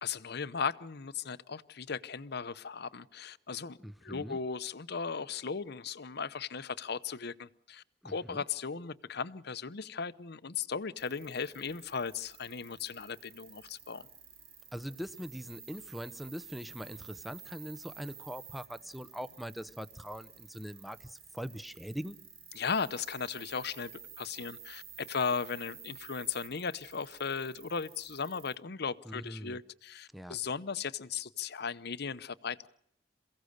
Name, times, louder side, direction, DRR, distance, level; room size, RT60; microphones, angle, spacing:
voice 1, 0.0-14.1 22.5-23.9 24.2-32.7, left 5 dB, 60° left, 0.8 m, -37 dB
voice 2, 3.8-4.4 8.0-8.4 14.7-22.2 29.1-29.6 30.1-30.4, equal, ahead, 0.8 m, -42 dB
sound 1, 11.0-28.6, right 7 dB, 55° right, 2.8 m, -52 dB
28.0 x 16.0 x 6.6 m
head